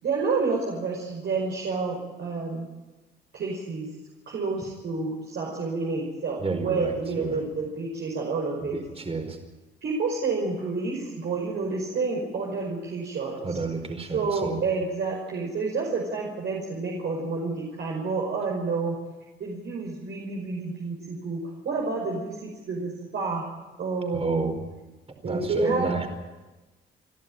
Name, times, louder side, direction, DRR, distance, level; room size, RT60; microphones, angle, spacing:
voice 1, 0.0-2.7 3.3-3.9 4.3-8.8 9.8-13.6 14.1-19.0 19.4-23.4 23.8-24.6 25.2-26.0, right 4 dB, 65° right, -2 dB, 5.6 m, -29 dB
voice 2, 6.4-7.4 8.6-9.4 13.4-14.6 24.1-24.6 25.2-26.1, right 4 dB, 30° right, 6 dB, 4.8 m, -30 dB
29.5 x 12.5 x 9.1 m, 1.2 s
cardioid pair, 90°, 20 cm